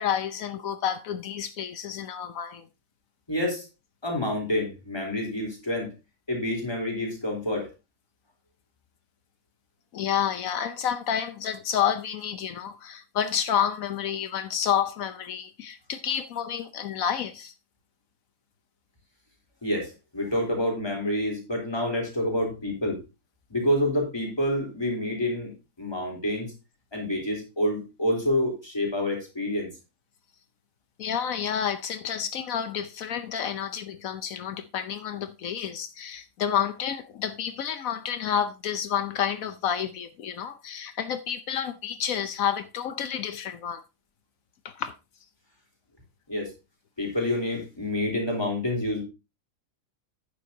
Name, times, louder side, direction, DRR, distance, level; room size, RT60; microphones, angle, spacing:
voice 1, 0.0-2.7 9.9-17.5 31.0-43.8 44.6-44.9, left 8 dB, 75° left, 1.2 m, -29 dB
voice 2, 3.3-3.7 4.0-5.9 6.3-7.7 19.6-23.0 23.5-25.5 25.8-26.5 26.9-29.7 46.3-46.5 47.0-49.0, left 1 dB, 20° left, 3.7 m, -28 dB
11.0 x 9.5 x 2.7 m
omnidirectional pair, 1.4 m